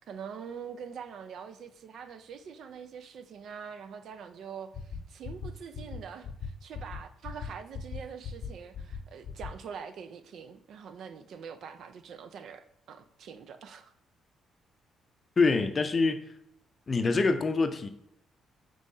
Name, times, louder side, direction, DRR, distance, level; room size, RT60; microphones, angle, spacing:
voice 1, 0.1-13.9, right 7 dB, 70° right, 0.4 m, -44 dB
sound 1, 4.7-5.0 5.2-5.5 5.7-6.0 6.2-6.5 6.7-7.0 7.2-7.5 7.7-8.0 8.2-8.5 8.7-9.0 9.2-9.5, left 9 dB, 70° left, 0.7 m, -38 dB
voice 2, 15.4-16.2 16.9-17.9, left 4 dB, 35° left, 0.5 m, -25 dB
5.4 x 3.1 x 2.6 m
cardioid pair, 90°, 0 cm